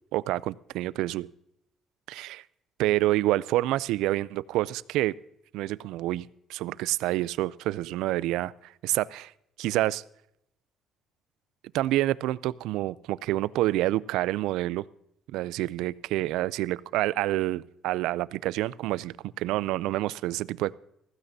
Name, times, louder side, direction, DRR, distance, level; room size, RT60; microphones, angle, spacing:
voice 1, 0.1-1.3 2.1-2.4 2.8-5.1 5.5-9.3 9.6-10.0 11.7-14.8 15.3-20.7, right 16 dB, 90° right, 20 dB, 0.3 m, -28 dB
15.5 x 15.5 x 2.7 m, 0.75 s
cardioid pair, 165°, 0 cm